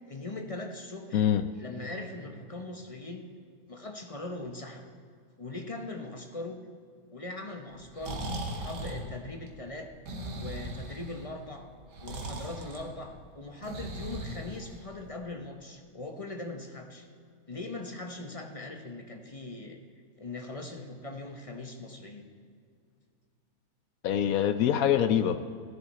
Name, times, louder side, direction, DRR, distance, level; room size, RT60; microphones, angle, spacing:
voice 1, 0.0-1.2 1.6-3.3 3.7-4.8 5.4-6.6 7.1-9.9 10.3-11.7 12.0-17.1 17.5-19.8 20.2-22.2, left 2 dB, 25° left, 3 dB, 0.7 m, -40 dB
voice 2, 1.1-1.4 24.0-25.4, left 9 dB, 70° left, 10 dB, 0.9 m, -24 dB
Breathing, 7.7-15.2, right 1 dB, 80° right, 2.0 m, -39 dB
16.0 x 10.5 x 4.1 m, 2.2 s
omnidirectional pair, 1.8 m